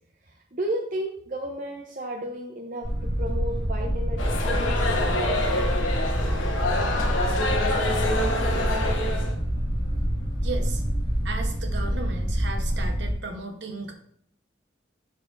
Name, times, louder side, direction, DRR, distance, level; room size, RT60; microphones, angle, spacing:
voice 1, 0.5-5.8 7.9-8.0, right 1 dB, 45° right, 0 dB, 0.6 m, -33 dB
sound 1, 2.8-13.1, equal, 25° left, 1.7 m, -26 dB
sound 2, 4.2-9.3, left 2 dB, 90° left, 1.1 m, -27 dB
voice 2, 10.4-10.8 11.2-14.0, right 3 dB, 60° right, 4 dB, 1.0 m, -35 dB
10.5 x 4.1 x 2.5 m, 0.65 s
head